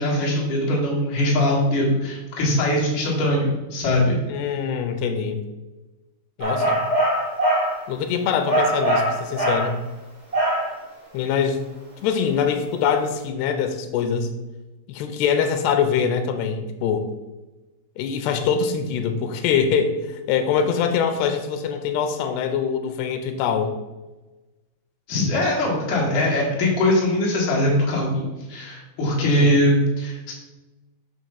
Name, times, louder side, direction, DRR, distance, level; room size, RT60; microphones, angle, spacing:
voice 1, 0.0-4.2 25.1-30.3, left 1 dB, 60° left, -4 dB, 2.9 m, -21 dB
voice 2, 4.3-5.4 6.4-6.8 7.9-9.8 11.1-11.6 12.0-14.3 14.9-17.0 18.0-19.9 20.3-23.7 29.2-29.6, left 7 dB, 85° left, 7 dB, 2.7 m, -23 dB
sound 1, 6.4-7.8 8.5-9.7 10.3-10.7, right 1 dB, 15° right, 1.1 m, -21 dB
7.5 x 3.0 x 5.6 m, 1.1 s
omnidirectional pair, 4.7 m